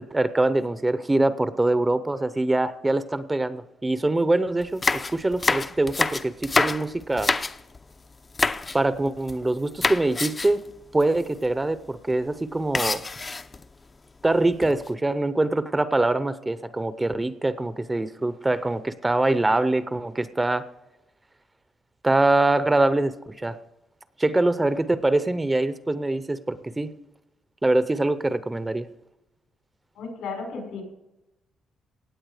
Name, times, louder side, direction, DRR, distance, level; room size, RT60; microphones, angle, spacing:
voice 1, 0.0-7.3 8.7-10.6 10.9-13.0 14.2-20.7 22.0-23.6 24.2-26.9 27.6-28.9, right 2 dB, 15° right, 13 dB, 0.7 m, -24 dB
sound 1, 4.6-7.8 8.3-8.8 9.1-9.5 9.8-10.6 11.0-11.1 11.3-11.5 12.7-13.6 14.3-14.9, left 3 dB, 25° left, 0.5 m, -26 dB
voice 2, 30.0-30.8, left 4 dB, 85° left, 2 dB, 5.4 m, -34 dB
17.0 x 8.6 x 4.9 m, 0.92 s
cardioid pair, 130°, 0 cm